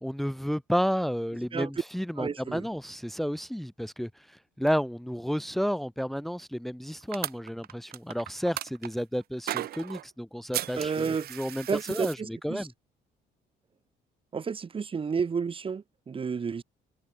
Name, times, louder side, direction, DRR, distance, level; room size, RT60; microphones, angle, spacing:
voice 1, 0.0-12.7, equal, ahead, 1.7 m, -31 dB
voice 2, 2.2-2.7 10.8-11.3 11.7-12.7 14.3-16.6, right 6 dB, 30° right, 2.5 m, -31 dB
sound 1, 7.1-8.9 9.5-10.0 10.5-12.1, right 12 dB, 65° right, 3.6 m, -35 dB
cardioid pair, 110°, 17 cm